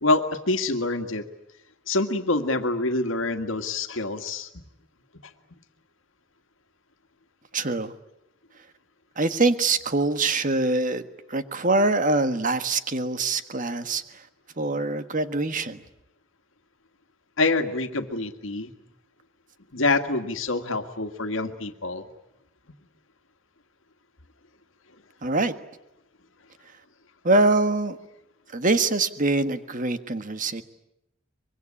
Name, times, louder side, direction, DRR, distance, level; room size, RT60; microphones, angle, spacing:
voice 1, 0.0-1.3 1.9-4.6 17.4-18.7 19.7-22.1, left 2 dB, 75° left, 1.8 m, -26 dB
voice 2, 7.5-7.9 9.1-11.0 11.3-14.3 14.6-15.8 25.2-25.5 27.2-28.0 28.5-30.6, right 2 dB, 40° right, 1.5 m, -24 dB
24.5 x 23.0 x 9.9 m
head